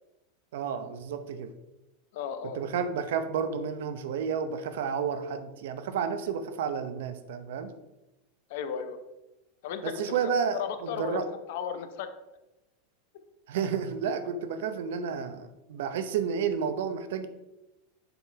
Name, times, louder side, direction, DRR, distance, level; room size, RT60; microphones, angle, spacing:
voice 1, 0.5-1.5 2.5-7.7 9.8-11.3 13.5-17.3, right 6 dB, 75° right, 10 dB, 0.7 m, -31 dB
voice 2, 2.1-2.6 8.5-9.0 9.6-12.1, left 8 dB, 65° left, 9 dB, 0.8 m, -35 dB
6.9 x 3.9 x 4.6 m, 0.97 s
supercardioid pair, 145°, 0 cm